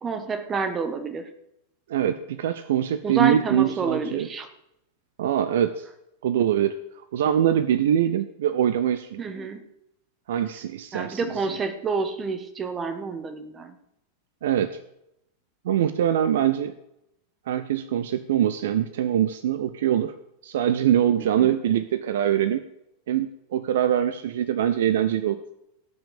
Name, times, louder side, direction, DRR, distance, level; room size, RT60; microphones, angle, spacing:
voice 1, 0.0-1.3 3.0-4.5 9.2-9.7 10.9-13.8 21.2-21.6, right 4 dB, 20° right, 10 dB, 1.6 m, -29 dB
voice 2, 1.9-4.3 5.2-5.9 6.2-9.2 10.3-11.3 14.4-14.8 15.6-16.7 17.5-20.1 20.4-22.7 23.1-25.4, right 10 dB, 60° right, 13 dB, 0.6 m, -23 dB
17.5 x 6.0 x 7.0 m, 0.81 s
figure-of-eight pair, 90°, 0 cm